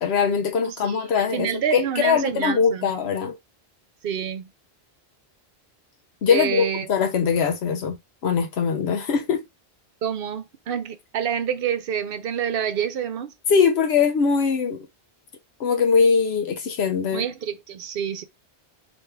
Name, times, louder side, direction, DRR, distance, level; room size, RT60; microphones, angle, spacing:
voice 1, 0.0-3.4 6.2-8.0 8.2-9.4 13.5-14.8 15.6-17.2, left 6 dB, 80° left, 0.9 m, -21 dB
voice 2, 0.6-2.9 4.0-4.5 6.3-6.9 10.0-13.3 17.1-18.2, right 8 dB, 65° right, 0.8 m, -27 dB
3.3 x 3.0 x 3.2 m
omnidirectional pair, 1.1 m